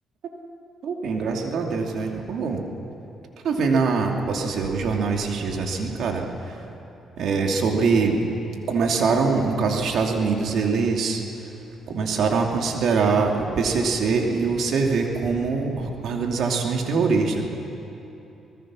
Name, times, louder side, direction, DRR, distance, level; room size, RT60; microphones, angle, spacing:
voice 1, 0.8-2.6 3.4-6.6 7.2-8.2 8.7-11.5 11.9-17.4, right 4 dB, 70° right, 2 dB, 2.7 m, -23 dB
25.0 x 19.5 x 6.3 m, 2.9 s
cardioid pair, 90°, 0 cm